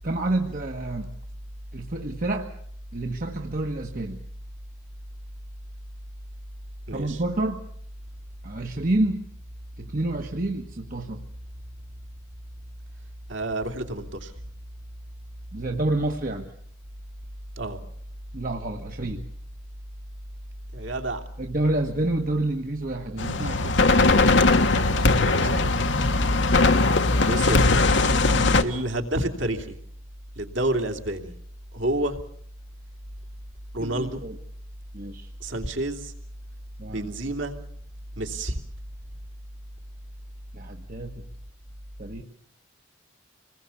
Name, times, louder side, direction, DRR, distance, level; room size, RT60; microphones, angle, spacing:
voice 1, 0.0-1.1 1.7-2.5 2.9-4.2 6.9-7.6 8.4-9.3 9.8-11.2 15.5-16.5 18.3-19.2 21.4-24.0 26.1-26.5 28.3-28.6 33.8-34.4 34.9-35.3 36.8-37.1 40.5-41.3 42.0-42.2, right 2 dB, 45° right, 3 dB, 1.5 m, -29 dB
voice 2, 6.9-7.2 13.3-14.3 17.6-17.8 20.7-21.2 25.1-25.7 27.2-27.8 28.6-29.7 30.4-31.3 31.7-32.2 33.7-34.2 35.4-36.1 36.8-37.6 38.2-38.6, right 1 dB, 60° right, 5 dB, 2.9 m, -29 dB
sound 1, 23.2-28.6, left 3 dB, 60° left, 1.5 m, -20 dB
27.0 x 20.5 x 7.2 m, 0.63 s
head